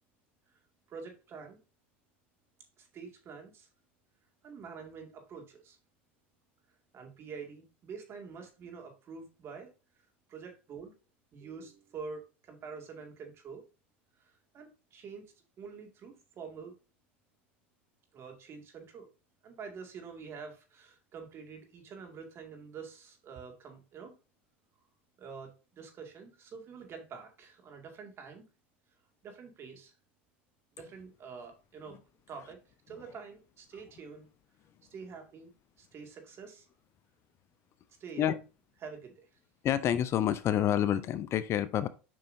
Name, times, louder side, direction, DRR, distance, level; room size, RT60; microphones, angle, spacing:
voice 1, 0.9-1.6 2.8-3.7 4.4-5.8 6.9-9.7 10.3-10.9 11.3-13.6 14.2-15.2 15.6-16.7 18.1-19.1 19.4-24.1 25.2-28.4 29.2-29.9 30.7-32.0 32.3-32.6 32.9-34.3 34.9-35.5 35.8-36.7 38.0-38.3 38.8-39.3, right 5 dB, 40° right, 2.0 m, -46 dB
voice 2, 39.6-41.9, left 10 dB, 40° left, 0.5 m, -28 dB
7.5 x 5.5 x 2.6 m
hypercardioid pair, 95°, 7 cm